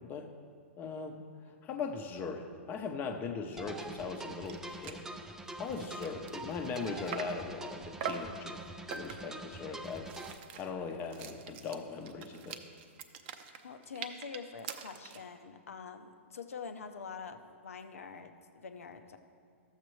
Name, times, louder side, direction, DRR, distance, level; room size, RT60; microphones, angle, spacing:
voice 1, 0.0-0.3 0.8-5.1 5.5-8.6 8.9-10.1 10.6-12.6, left 5 dB, 25° left, 6 dB, 0.7 m, -39 dB
sound 1, 3.6-10.4, right 2 dB, 5° right, 0.4 m, -45 dB
sound 2, 4.2-4.3 4.5-4.6 4.8-5.1 5.5-7.5 8.0-8.4 8.9-9.4 9.8-15.3, right 8 dB, 50° right, 0.6 m, -44 dB
voice 2, 13.6-19.2, left 5 dB, 90° left, 8 dB, 0.7 m, -45 dB
13.0 x 7.3 x 3.1 m, 2.2 s
hypercardioid pair, 135°, 7 cm